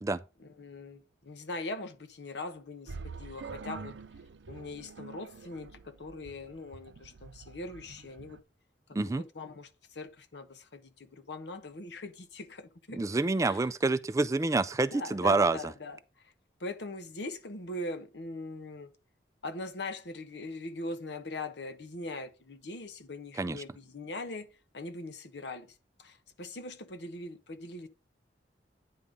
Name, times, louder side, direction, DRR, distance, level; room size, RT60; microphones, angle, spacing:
voice 1, 0.4-4.0 4.5-8.4 9.1-13.0 13.4-13.7 14.9-16.3 16.6-18.9 19.4-27.9, left 2 dB, 75° left, 1.0 m, -41 dB
sound 1, 2.9-8.4, right 4 dB, 90° right, 0.5 m, -46 dB
voice 2, 12.9-15.7 23.4-23.6, right 3 dB, 20° right, 0.3 m, -27 dB
9.5 x 3.6 x 5.2 m
head